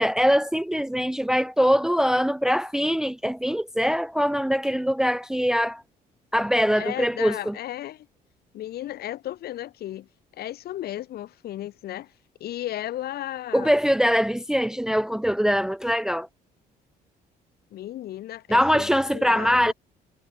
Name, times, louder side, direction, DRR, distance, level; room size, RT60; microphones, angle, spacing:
voice 1, 0.0-5.8 6.3-7.5 13.5-16.3 18.5-19.7, equal, 5° right, 0.7 m, -22 dB
voice 2, 6.7-8.1 8.5-12.1 12.4-13.7 17.7-19.7, left 13 dB, 65° left, 5.2 m, -35 dB
cardioid pair, 110°, 17 cm